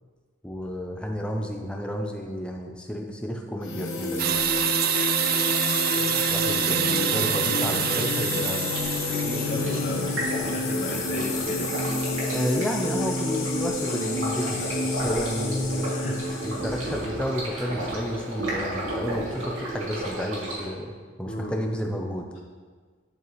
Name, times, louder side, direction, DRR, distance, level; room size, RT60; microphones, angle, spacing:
voice 1, 0.4-4.4 6.0-8.7 12.3-16.0 16.4-20.9 21.2-22.3, equal, 5° left, 1 dB, 0.6 m, -31 dB
sound 1, 3.6-17.0, left 3 dB, 70° left, 1.1 m, -29 dB
sound 2, 4.2-9.6, right 10 dB, 45° right, 0.3 m, -26 dB
voice 2, 7.2-11.9 15.9-16.4 16.7-16.9 21.2-21.6, left 1 dB, 40° left, -3 dB, 0.7 m, -36 dB
Stream, 8.7-20.7, right 1 dB, 80° right, 2.1 m, -33 dB
11.0 x 4.6 x 3.1 m, 1.5 s
head